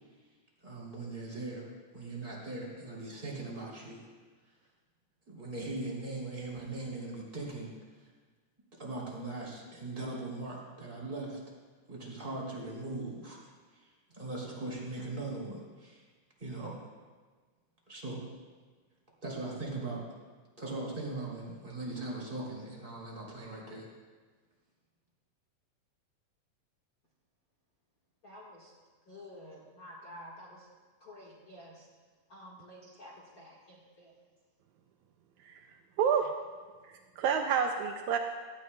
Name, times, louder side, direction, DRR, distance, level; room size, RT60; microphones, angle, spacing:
voice 1, 0.6-1.7 1.9-4.1 5.3-7.7 8.0-8.1 8.8-11.4 11.9-13.5 13.7-16.1 16.4-16.8 17.9-18.2 19.2-20.1 20.6-23.9, right 2 dB, 15° right, -4 dB, 2.8 m, -40 dB
voice 2, 28.2-28.7 29.1-30.7 31.0-31.9 32.3-34.1, equal, 40° left, -4 dB, 1.3 m, -50 dB
voice 3, 35.4-36.3 36.8-38.2, right 7 dB, 75° right, 4 dB, 1.9 m, -30 dB
17.5 x 13.5 x 2.2 m, 1.4 s
omnidirectional pair, 3.7 m